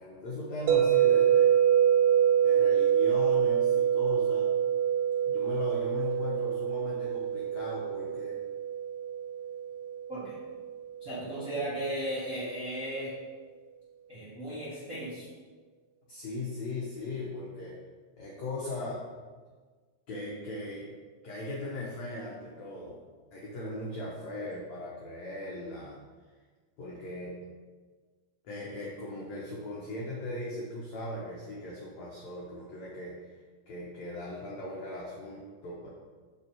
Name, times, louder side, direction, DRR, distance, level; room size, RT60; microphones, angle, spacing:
voice 1, 0.0-1.5 2.4-4.5 5.3-8.4 16.1-17.8 18.2-19.0 20.1-20.9 21.2-23.0 23.3-26.0 26.8-27.4 28.4-33.3 33.7-35.9, left 2 dB, 75° left, -4 dB, 1.6 m, -38 dB
sound 1, 0.7-10.8, right 9 dB, 90° right, 2.6 m, -26 dB
voice 2, 11.0-13.1 14.1-15.3, right 1 dB, 40° right, -10 dB, 1.2 m, -36 dB
7.1 x 6.0 x 4.5 m, 1.5 s
omnidirectional pair, 4.6 m